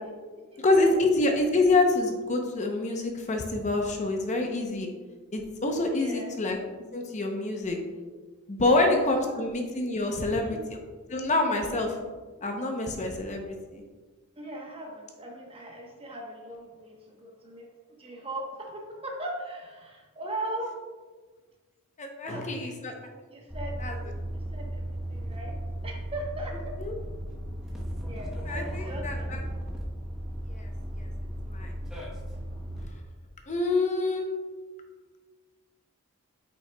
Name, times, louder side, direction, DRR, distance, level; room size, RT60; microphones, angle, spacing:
voice 1, 0.6-4.9 5.3-6.6 6.9-7.8 8.5-10.6 11.1-12.0 12.4-13.8 22.0-22.9 23.8-24.0 26.8-26.9 28.5-29.4 30.5-30.7 31.0-31.1 31.5-31.7 33.5-34.3, left 2 dB, 35° left, 3 dB, 0.7 m, -26 dB
voice 2, 5.9-6.4 8.8-8.9 9.2-9.4 10.3-10.6 14.4-17.7 18.0-20.7 22.2-22.9 23.3-23.8 24.5-25.5 25.8-26.7 28.1-29.4, right 1 dB, 25° right, 0 dB, 1.0 m, -39 dB
sound 1, 23.5-32.8, right 1 dB, 5° right, 1.0 m, -35 dB
8.6 x 5.6 x 2.2 m, 1.4 s
head